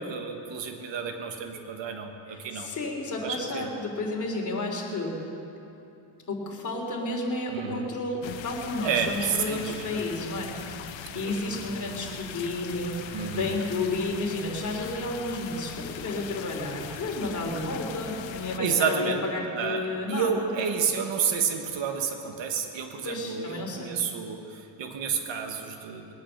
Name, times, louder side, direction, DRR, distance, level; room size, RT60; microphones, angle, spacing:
voice 1, 0.0-2.7 3.2-3.7 7.5-7.9 8.8-10.0 11.1-11.5 13.1-13.6 18.6-19.2 19.5-26.1, right 6 dB, 75° right, 4 dB, 1.7 m, -30 dB
voice 2, 2.5-5.2 6.3-20.5 23.0-23.9, left 2 dB, 40° left, 0 dB, 3.2 m, -32 dB
sound 1, 8.2-18.6, left 8 dB, 80° left, 0.9 m, -40 dB
22.0 x 9.0 x 7.0 m, 2.8 s
cardioid pair, 110°, 45 cm